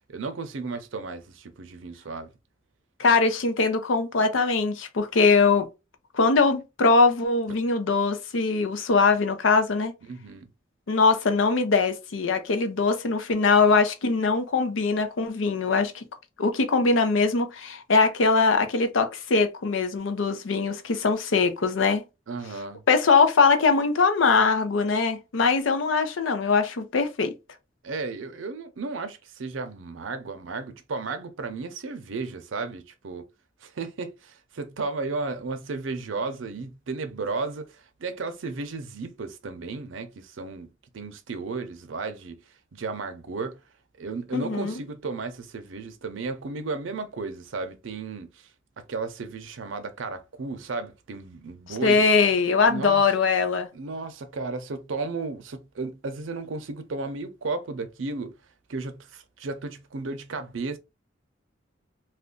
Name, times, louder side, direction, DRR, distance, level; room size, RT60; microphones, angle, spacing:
voice 1, 0.1-2.3 10.1-10.5 22.3-22.8 27.8-33.3 33.6-40.7 40.9-42.4 42.7-43.6 44.0-48.5 48.8-52.1 52.7-53.0 53.7-58.3 58.7-60.8, right 3 dB, 85° right, 0.6 m, -34 dB
voice 2, 3.0-5.7 6.1-9.9 10.9-16.0 16.4-22.0 22.9-27.3 44.3-44.7 51.8-53.7, left 4 dB, 90° left, 0.6 m, -22 dB
2.4 x 2.2 x 3.6 m
head